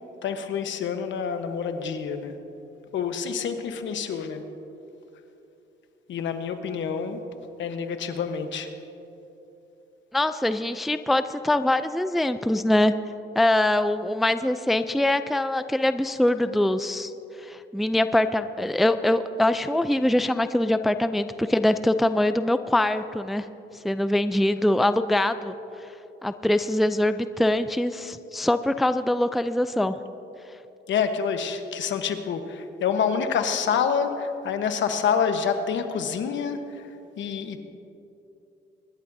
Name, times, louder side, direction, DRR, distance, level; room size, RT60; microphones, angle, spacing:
voice 1, 0.2-2.3 2.9-4.4 6.1-7.2 7.6-8.7 30.9-36.6 37.2-37.6, left 6 dB, 70° left, 7 dB, 1.1 m, -27 dB
voice 2, 10.1-12.9 13.4-17.1 17.4-23.5 23.8-25.5 26.2-30.0, left 1 dB, ahead, 11 dB, 0.4 m, -23 dB
25.0 x 11.5 x 2.7 m, 2.9 s
cardioid pair, 90°, 20 cm